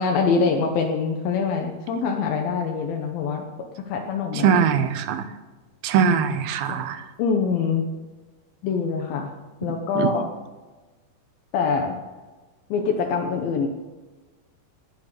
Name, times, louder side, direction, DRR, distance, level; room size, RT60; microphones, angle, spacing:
voice 1, 0.0-3.4 3.8-4.6 6.7-6.8 7.2-7.9 8.6-9.3 9.6-10.3 11.5-11.9 12.7-13.7, left 5 dB, 75° left, 2 dB, 2.8 m, -24 dB
voice 2, 4.4-5.3 5.8-7.0 10.0-10.1, right 7 dB, 85° right, 10 dB, 2.9 m, -21 dB
19.5 x 7.5 x 6.7 m, 1.2 s
omnidirectional pair, 4.3 m